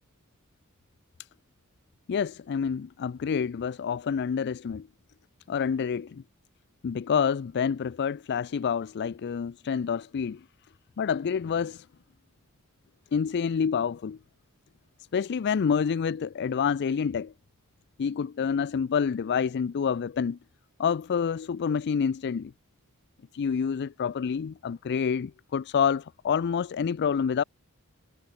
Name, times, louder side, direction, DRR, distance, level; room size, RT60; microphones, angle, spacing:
voice 1, 2.1-4.9 5.5-6.2 6.8-10.4 11.0-11.9 13.1-14.2 15.1-17.3 18.0-20.4 20.8-22.5 23.3-27.4, left 6 dB, 50° left, 0.4 m, -28 dB
head